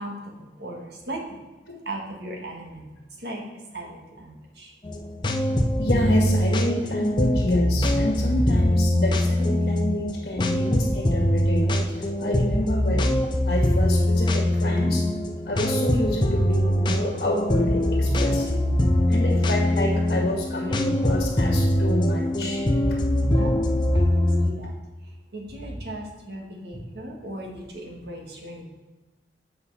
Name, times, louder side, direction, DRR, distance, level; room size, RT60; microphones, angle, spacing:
voice 1, 0.0-1.4 1.8-2.8 3.2-3.4 3.7-4.7 23.4-23.7 23.9-24.7 25.3-28.6, right 1 dB, 65° right, 0 dB, 1.6 m, -37 dB
sound 1, 4.8-24.5, left 1 dB, 25° left, 0.6 m, -23 dB
voice 2, 5.8-13.2 13.5-15.1 15.5-18.6 19.1-22.6 22.9-23.0 26.7-26.8, left 1 dB, 55° left, -2 dB, 1.8 m, -28 dB
8.0 x 5.5 x 4.1 m, 1.2 s
head